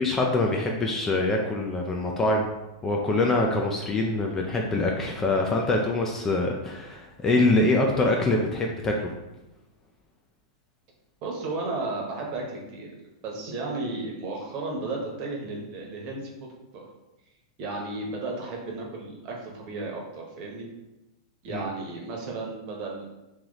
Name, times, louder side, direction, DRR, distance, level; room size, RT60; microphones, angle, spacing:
voice 1, 0.0-2.5 2.8-9.1 21.5-21.6, left 2 dB, 15° left, 1 dB, 0.4 m, -24 dB
voice 2, 11.2-12.9 13.2-16.5 16.7-16.9 17.6-20.7 21.4-23.1, right 3 dB, 40° right, -1 dB, 1.0 m, -34 dB
3.1 x 2.9 x 3.9 m, 0.98 s
hypercardioid pair, 145°, 3 cm